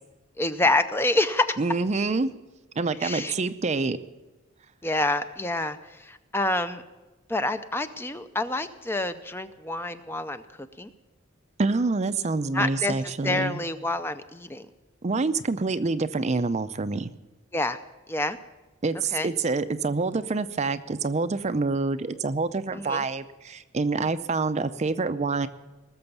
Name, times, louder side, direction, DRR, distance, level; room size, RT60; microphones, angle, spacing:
voice 1, 0.4-1.6 3.0-3.3 4.8-6.8 7.3-10.9 12.5-14.7 17.5-17.8 18.1-18.4 19.1-19.3 22.7-23.1, left 2 dB, 10° left, 10 dB, 0.5 m, -27 dB
voice 2, 1.6-2.3 2.8-4.0 11.6-13.6 15.0-17.1 18.8-25.5, right 3 dB, 35° right, 12 dB, 0.5 m, -26 dB
19.5 x 7.0 x 7.0 m, 1.1 s
head